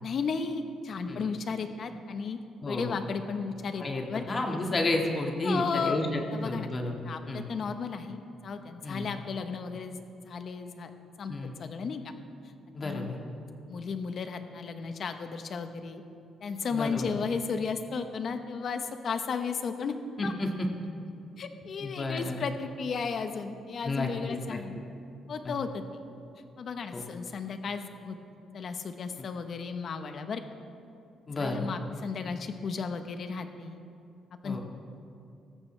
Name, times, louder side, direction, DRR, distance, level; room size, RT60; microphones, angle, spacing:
voice 1, 0.0-2.4 2.6-4.2 5.4-6.0 6.3-6.7 7.0-10.0 10.2-10.9 11.2-11.3 11.6-12.1 12.8-13.1 13.7-16.0 16.4-19.9 20.2-20.3 21.4-24.8 25.3-25.8 26.6-28.2 28.5-30.4 31.4-33.8 34.4-34.6, left 5 dB, 55° left, 7 dB, 1.1 m, -34 dB
voice 2, 2.6-3.0 3.8-7.0 7.3-7.5 8.8-9.1 11.3-11.5 12.7-13.2 16.7-17.1 20.2-20.7 21.8-22.4 23.8-24.1 24.5-24.6 25.4-25.5 26.9-27.0 31.3-31.7 34.4-34.6, left 2 dB, 35° left, 1 dB, 1.9 m, -31 dB
18.0 x 14.0 x 3.3 m, 2.5 s
cardioid pair, 90°, 0 cm